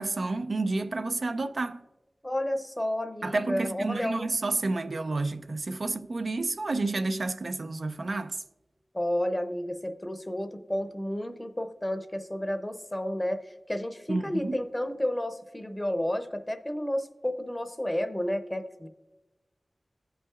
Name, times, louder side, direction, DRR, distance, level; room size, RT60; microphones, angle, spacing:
voice 1, 0.0-1.8 3.2-8.4 14.1-14.6, right 3 dB, 65° right, 0.3 m, -30 dB
voice 2, 2.2-4.3 8.9-18.9, left 1 dB, 15° left, 0.6 m, -31 dB
16.0 x 5.5 x 2.4 m
wide cardioid pair, 65°, 0 cm